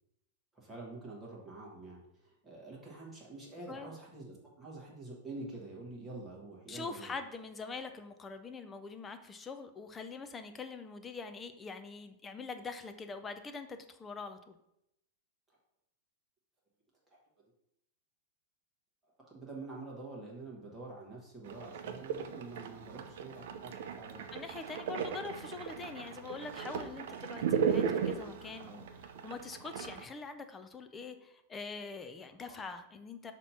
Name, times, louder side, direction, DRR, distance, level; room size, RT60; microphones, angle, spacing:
voice 1, 0.5-7.1 15.5-15.6 17.1-17.2 19.1-24.3 32.5-32.6, right 2 dB, 5° right, -5 dB, 1.3 m, -47 dB
voice 2, 6.7-14.6 24.3-33.3, left 4 dB, 10° left, 8 dB, 0.4 m, -44 dB
sound 1, 21.4-30.0, right 7 dB, 55° right, 0.6 m, -36 dB
6.3 x 2.9 x 5.5 m, 0.81 s
supercardioid pair, 175°, 0 cm